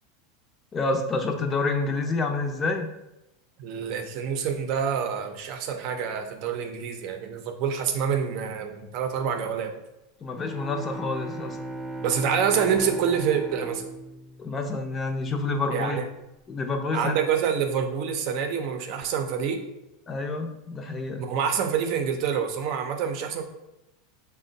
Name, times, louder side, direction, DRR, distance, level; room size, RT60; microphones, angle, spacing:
voice 1, 0.7-2.9 10.2-11.6 14.4-16.0 16.5-17.2 20.1-21.2, left 3 dB, 25° left, 4 dB, 0.6 m, -28 dB
voice 2, 3.6-9.7 12.0-13.8 15.7-16.0 16.9-19.6 21.2-23.4, right 7 dB, 55° right, 5 dB, 0.6 m, -27 dB
Bowed string instrument, 10.3-15.3, right 2 dB, 5° right, 0.7 m, -38 dB
4.2 x 2.2 x 3.9 m, 0.93 s
supercardioid pair, 110°, 0 cm